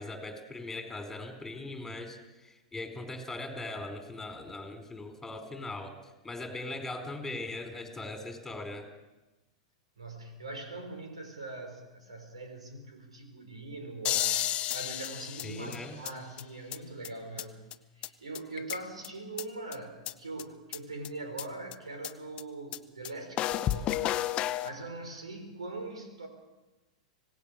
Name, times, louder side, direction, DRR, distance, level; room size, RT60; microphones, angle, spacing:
voice 1, 0.0-8.9 15.4-16.0, left 2 dB, 10° left, 6 dB, 4.3 m, -40 dB
voice 2, 10.0-24.0 24.6-26.3, right 2 dB, 85° right, 5 dB, 4.9 m, -42 dB
sound 1, 14.0-16.1 16.4-16.5 16.7-16.8 17.0-17.1 17.4-17.5 17.7-17.8 18.0-18.1 18.3-19.1 19.4-19.5 19.7-19.8 20.1-20.2 20.4-20.5 20.7-20.8 21.0-21.1 21.4-21.5 21.7-21.8 22.0-22.1 22.4-22.5 22.7-22.8 23.0-23.1 23.4-24.7, left 12 dB, 35° left, 0.9 m, -31 dB
25.5 x 18.0 x 6.6 m, 1.1 s
hypercardioid pair, 100°, 3 cm